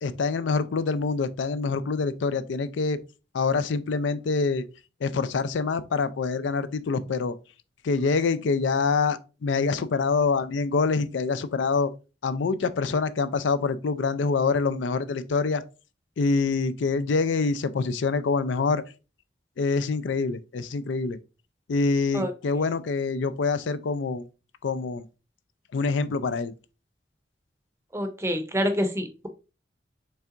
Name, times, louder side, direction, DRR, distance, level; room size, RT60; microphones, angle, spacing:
voice 1, 0.0-3.0 3.3-4.6 5.0-7.3 7.8-11.9 12.2-15.6 16.2-18.8 19.6-21.2 21.7-24.2 24.6-25.1 25.7-26.5, left 4 dB, 80° left, 0.4 m, -25 dB
voice 2, 27.9-29.3, equal, 15° right, 0.6 m, -27 dB
5.6 x 3.4 x 2.5 m
head